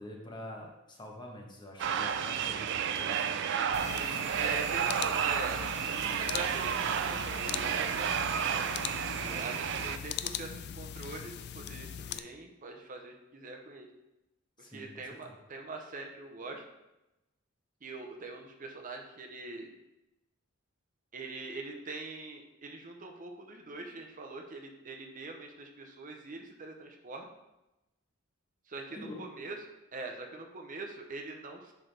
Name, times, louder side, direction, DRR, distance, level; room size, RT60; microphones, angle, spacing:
voice 1, 0.0-3.5 9.3-9.4 14.6-15.2 28.9-29.2, left 1 dB, 20° left, 0 dB, 1.1 m, -46 dB
sound 1, 1.8-10.0, right 8 dB, 60° right, 0.3 m, -31 dB
sound 2, 3.7-12.2, left 8 dB, 55° left, 0.3 m, -41 dB
voice 2, 3.8-5.6 6.2-8.8 9.2-13.9 14.7-16.6 17.8-19.7 21.1-27.3 28.7-31.7, right 3 dB, 40° right, 2 dB, 0.7 m, -43 dB
10.5 x 3.8 x 3.3 m, 0.94 s
head